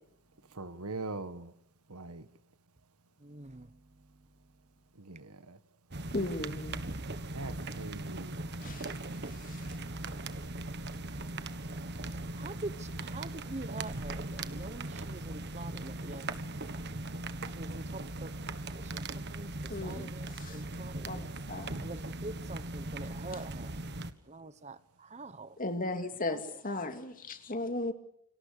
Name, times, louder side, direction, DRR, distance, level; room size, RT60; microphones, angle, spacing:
voice 1, 0.6-1.5 1.9-2.2 5.0-5.6 7.3-8.3, right 3 dB, 90° right, 12 dB, 1.7 m, -41 dB
voice 2, 3.2-3.7 12.3-16.4 17.6-18.3 18.7-19.5 19.8-21.3 21.8-23.7 24.3-25.6 26.2-26.8, right 2 dB, 30° right, 14 dB, 1.1 m, -45 dB
sound 1, 5.9-24.1, right 2 dB, 50° right, 1.5 m, -39 dB
voice 3, 6.1-6.8 8.6-8.9 9.5-9.6 19.7-20.1 20.4-20.6 21.0-21.9 23.3-23.4 25.6-27.9, left 2 dB, 40° left, 8 dB, 2.5 m, -36 dB
29.5 x 26.5 x 6.8 m, 0.72 s
head